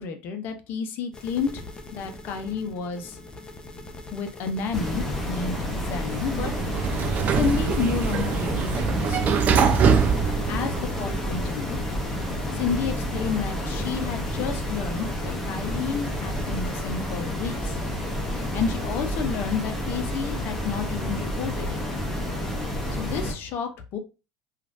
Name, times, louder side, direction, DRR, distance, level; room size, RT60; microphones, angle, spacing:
voice 1, 0.0-3.2 4.1-6.5 7.3-9.3 10.3-11.8 12.5-17.8 18.5-21.8 23.0-24.0, left 6 dB, 55° left, 6 dB, 0.7 m, -31 dB
sound 1, 1.1-16.9, left 2 dB, 20° left, 0.7 m, -43 dB
sound 2, 4.7-23.3, left 1 dB, 5° left, 1.0 m, -30 dB
Sliding door, 6.0-11.2, right 6 dB, 40° right, 0.4 m, -24 dB
3.0 x 2.5 x 2.6 m, 0.30 s
hypercardioid pair, 90°, 4 cm